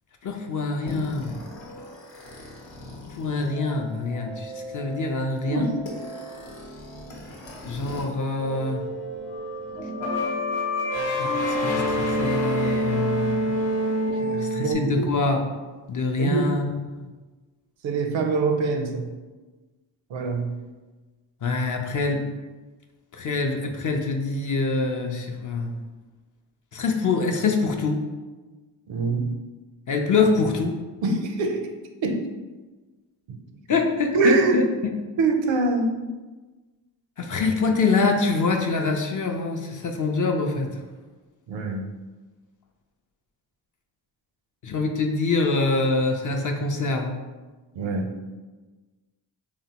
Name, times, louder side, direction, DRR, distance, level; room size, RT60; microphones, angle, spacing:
voice 1, 0.2-1.4 3.1-5.7 7.6-8.9 11.1-13.6 14.4-15.4 15.9-16.7 17.0-17.1 21.4-22.2 23.1-25.7 26.7-28.0 29.9-30.8 33.7-34.6 37.2-40.7 44.6-47.2, left 3 dB, 40° left, 3 dB, 0.5 m, -25 dB
sound 1, 0.9-8.0 8.3-14.7, equal, 65° left, 0.9 m, -29 dB
voice 2, 14.2-15.1 16.2-16.5 17.8-19.1 20.1-20.5 28.9-29.3 31.0-31.7 32.0-32.2 33.3-33.4 34.1-34.6 35.2-35.9 41.5-41.8 47.7-48.2, right 3 dB, 70° right, 5 dB, 0.5 m, -24 dB
3.4 x 2.0 x 2.8 m, 1.3 s
supercardioid pair, 40°, 48 cm